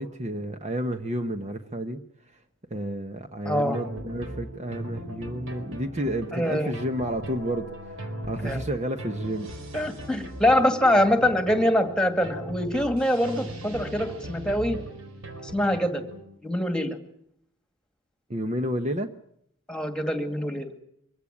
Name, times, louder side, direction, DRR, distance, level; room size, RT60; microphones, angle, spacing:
voice 1, 0.0-2.0 2.7-8.0 8.3-9.5 18.3-19.1, right 1 dB, 30° right, 7 dB, 1.1 m, -30 dB
voice 2, 3.5-3.8 6.3-6.7 8.4-8.6 9.7-14.8 15.4-16.0 16.4-17.0 19.7-20.7, left 1 dB, 5° left, 8 dB, 2.2 m, -24 dB
sound 1, 3.7-16.2, right 1 dB, 70° right, 4.1 m, -39 dB
24.0 x 16.0 x 10.0 m, 0.72 s
head